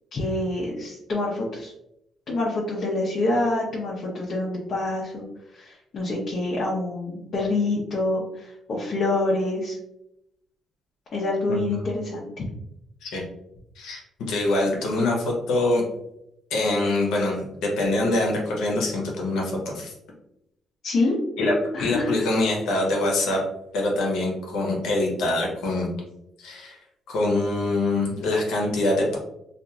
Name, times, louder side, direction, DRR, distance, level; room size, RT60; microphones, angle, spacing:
voice 1, 0.1-1.7 2.3-5.2 5.5-9.8 11.1-12.3 20.8-21.2 21.7-22.1, left 2 dB, 55° left, -5 dB, 0.7 m, -26 dB
voice 2, 11.5-11.8 13.0-13.2 13.8-15.8 16.5-19.9 21.4-23.4 23.7-25.9 26.4-26.8 27.1-29.2, left 2 dB, 85° left, -1 dB, 0.8 m, -24 dB
2.8 x 2.5 x 2.3 m, 0.82 s
cardioid pair, 90°, 0 cm